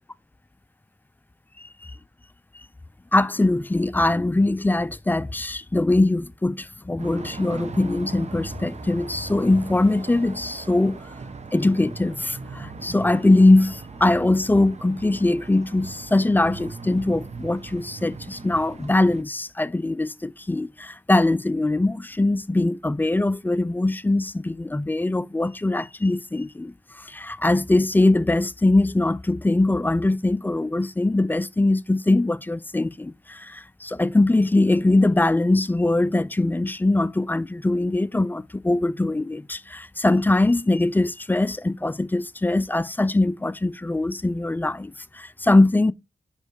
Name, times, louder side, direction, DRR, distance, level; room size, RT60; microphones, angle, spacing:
voice 1, 1.6-1.9 3.1-11.0 11.5-45.9, left 2 dB, 15° left, 0.4 m, -22 dB
sound 1, 7.0-19.2, right 4 dB, 55° right, 0.9 m, -39 dB
6.6 x 5.4 x 4.6 m
cardioid pair, 75°, 14 cm